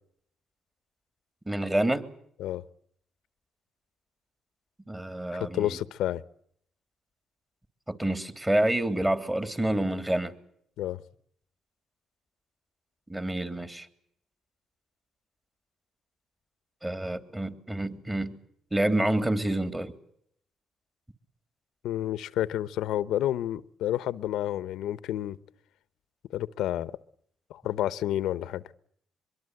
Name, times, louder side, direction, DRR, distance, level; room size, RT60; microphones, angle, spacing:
voice 1, 1.5-2.1 4.9-5.8 7.9-10.4 13.1-13.9 16.8-18.4 18.7-19.9, right 1 dB, 15° right, 9 dB, 3.1 m, -28 dB
voice 2, 5.4-6.2 10.8-11.0 21.8-25.4 26.3-26.9 27.5-28.6, left 12 dB, 85° left, 15 dB, 1.0 m, -30 dB
24.0 x 22.5 x 8.0 m, 0.69 s
cardioid pair, 90°, 0 cm